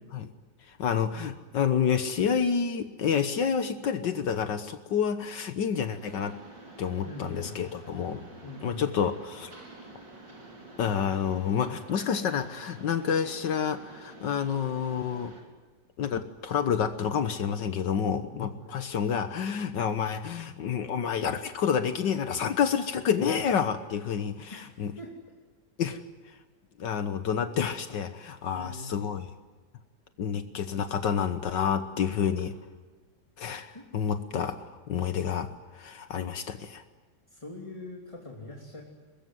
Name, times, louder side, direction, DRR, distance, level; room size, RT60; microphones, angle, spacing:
voice 1, 0.7-6.4 6.8-8.2 8.6-9.5 10.8-15.3 16.0-24.9 25.8-26.0 26.3-26.4 26.8-29.3 30.2-32.5 33.4-36.8, left 7 dB, 75° left, 9 dB, 1.8 m, -29 dB
Mechanisms, 5.9-15.4, right 2 dB, 80° right, 5.6 m, -49 dB
voice 2, 7.0-7.6 8.4-8.9 18.3-19.0 24.5-24.7 25.0-25.1 28.5-28.9 33.7-33.8 37.3-38.8, left 2 dB, 15° left, -1 dB, 3.2 m, -43 dB
24.5 x 21.0 x 9.4 m, 1.4 s
omnidirectional pair, 1.9 m